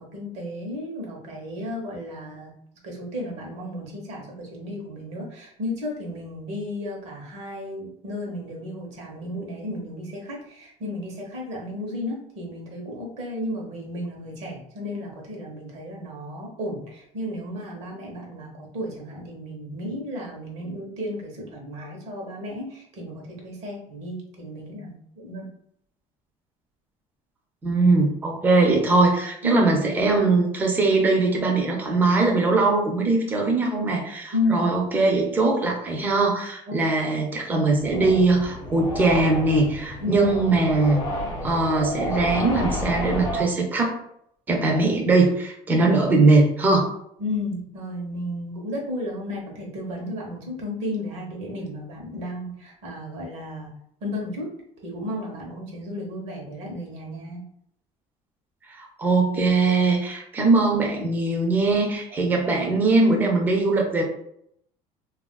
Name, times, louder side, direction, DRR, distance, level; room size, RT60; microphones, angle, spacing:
voice 1, 0.0-2.5 2.8-25.5 29.4-29.7 34.3-34.7 36.7-36.8 40.0-40.3 47.2-53.7 54.0-54.5 54.8-57.5 62.1-62.5 63.3-63.7, left 1 dB, 60° right, 0 dB, 0.9 m, -33 dB
voice 2, 27.6-41.0 41.4-44.0 44.5-46.9 58.7-64.0, right 3 dB, 15° right, 1 dB, 0.4 m, -21 dB
sound 1, 37.8-43.4, left 1 dB, 35° left, 0.6 m, -31 dB
3.5 x 2.4 x 2.2 m, 0.72 s
cardioid pair, 180°, 13 cm